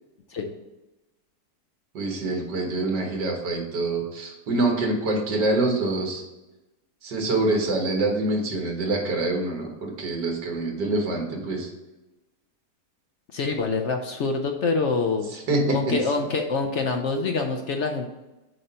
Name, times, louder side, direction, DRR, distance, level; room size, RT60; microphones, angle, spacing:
voice 1, 1.9-6.2 7.0-11.7 15.3-15.8, right 2 dB, 75° right, 0 dB, 2.1 m, -25 dB
voice 2, 13.3-15.3 15.7-18.1, left 4 dB, 70° left, 3 dB, 0.7 m, -26 dB
8.0 x 3.0 x 5.5 m, 1.0 s
omnidirectional pair, 1.8 m